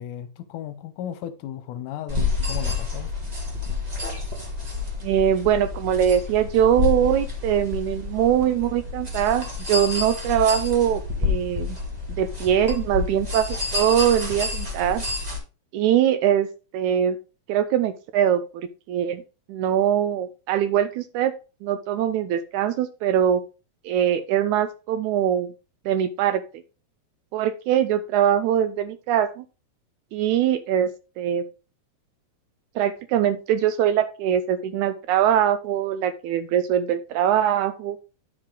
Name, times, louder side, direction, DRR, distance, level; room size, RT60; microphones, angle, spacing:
voice 1, 0.0-3.1, left 10 dB, 80° left, 2.2 m, -35 dB
sound 1, 2.1-15.4, left 4 dB, 35° right, 0.6 m, -29 dB
voice 2, 5.0-11.8 12.2-15.0 15.7-16.5 16.7-17.2 17.5-19.2 19.5-21.3 21.6-23.4 23.9-25.5 25.9-26.4 27.3-29.4 30.1-30.9 31.2-31.4 32.8-38.0, right 10 dB, 80° right, 1.8 m, -22 dB
9.7 x 4.8 x 3.8 m
omnidirectional pair, 3.8 m